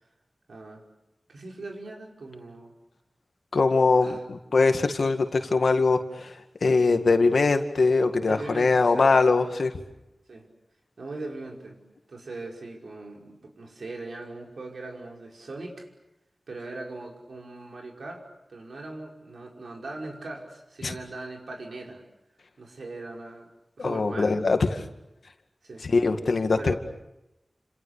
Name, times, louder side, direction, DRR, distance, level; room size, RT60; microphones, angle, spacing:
voice 1, 0.5-0.8 1.3-2.7 4.0-4.2 8.2-9.2 10.3-10.5 11.0-11.8 12.1-15.9 16.5-22.0 22.6-23.5 23.8-24.9 25.6-25.9 26.5-26.8, right 2 dB, 90° right, 0 dB, 5.5 m, -40 dB
voice 2, 3.5-9.7 20.8-20.9 23.8-24.7 25.9-26.7, left 3 dB, 85° left, 6 dB, 2.2 m, -22 dB
29.5 x 27.5 x 6.8 m, 0.92 s
wide cardioid pair, 60°, 0 cm